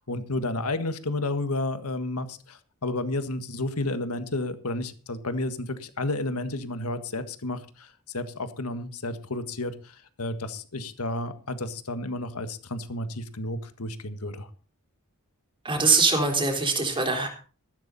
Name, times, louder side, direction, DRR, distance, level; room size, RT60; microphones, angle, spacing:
voice 1, 0.1-14.5, left 2 dB, 75° left, 10 dB, 1.6 m, -31 dB
voice 2, 15.6-17.3, right 4 dB, 25° right, 2 dB, 3.9 m, -23 dB
14.5 x 13.0 x 4.2 m, 0.38 s
head